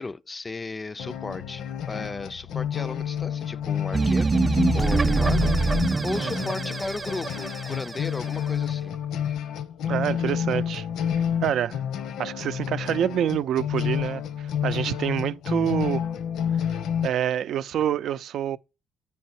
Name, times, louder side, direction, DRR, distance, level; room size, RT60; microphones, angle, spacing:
voice 1, 0.0-4.3 4.7-8.9, left 3 dB, 30° left, 0.4 m, -35 dB
sound 1, 1.0-17.1, left 8 dB, 85° left, 0.8 m, -29 dB
sound 2, 3.9-8.3, right 4 dB, 25° right, 0.5 m, -24 dB
voice 2, 5.3-5.6 6.2-6.3 9.9-10.9 11.1-11.8 12.2-14.2 14.6-16.0 17.0-18.6, right 10 dB, 70° right, 0.5 m, -27 dB
8.5 x 5.5 x 4.3 m
cardioid pair, 90°, 0 cm